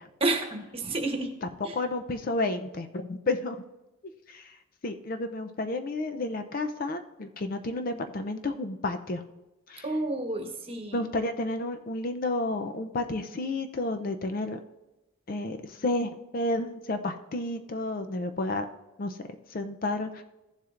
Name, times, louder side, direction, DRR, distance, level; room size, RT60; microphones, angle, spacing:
voice 1, 0.2-1.3 1.6-1.8 9.8-11.1, right 2 dB, 25° right, 3 dB, 1.1 m, -30 dB
voice 2, 1.4-3.6 4.3-4.6 4.8-9.2 9.7-9.8 10.9-14.6 15.3-18.7 19.0-19.2 19.5-20.2, left 2 dB, 40° left, 7 dB, 0.5 m, -31 dB
15.5 x 7.3 x 2.5 m, 1.0 s
head